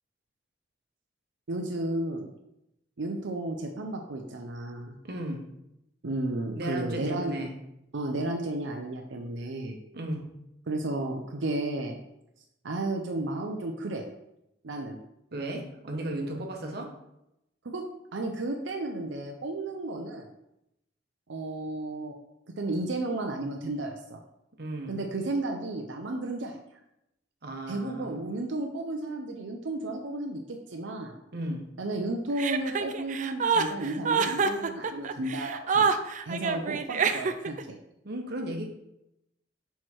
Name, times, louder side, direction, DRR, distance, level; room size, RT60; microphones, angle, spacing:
voice 1, 1.5-2.3 3.0-4.9 6.0-7.3 7.9-9.8 10.7-12.0 12.6-14.1 14.6-15.0 17.6-17.8 18.1-20.3 21.3-22.2 22.5-24.2 24.9-26.5 27.7-31.2 31.8-35.9 36.2-37.8, right 2 dB, 90° right, 2 dB, 0.6 m, -33 dB
voice 2, 5.0-5.4 6.6-7.5 9.9-10.3 15.3-16.9 24.6-25.0 27.4-28.2 31.3-31.7 38.0-38.7, right 1 dB, 60° right, 2 dB, 1.1 m, -35 dB
Chuckle chortle, 32.4-37.6, right 5 dB, 45° right, 0.4 m, -26 dB
6.3 x 4.6 x 4.4 m, 0.85 s
head